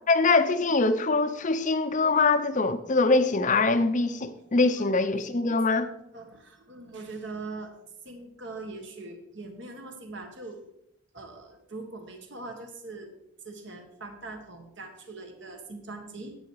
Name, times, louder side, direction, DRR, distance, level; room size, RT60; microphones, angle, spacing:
voice 1, 0.1-5.9, left 3 dB, 35° left, 0.6 m, -23 dB
voice 2, 5.4-7.7 8.0-10.6 11.1-13.1 13.4-16.4, right 3 dB, 60° right, 1.6 m, -42 dB
10.5 x 8.3 x 4.7 m
head